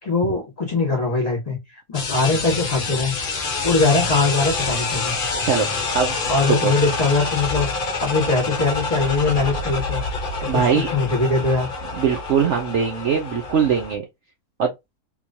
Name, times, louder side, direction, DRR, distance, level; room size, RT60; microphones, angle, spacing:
voice 1, 0.0-1.6 1.9-3.1 3.6-5.1 6.3-7.7 8.0-10.0 10.4-11.7, left 3 dB, 25° left, 1.6 m, -21 dB
sound 1, 1.9-14.0, left 4 dB, 40° left, 0.8 m, -27 dB
voice 2, 10.5-10.9 12.0-14.0 14.6-14.7, right 7 dB, 60° right, 0.8 m, -21 dB
3.7 x 3.0 x 2.7 m
omnidirectional pair, 1.7 m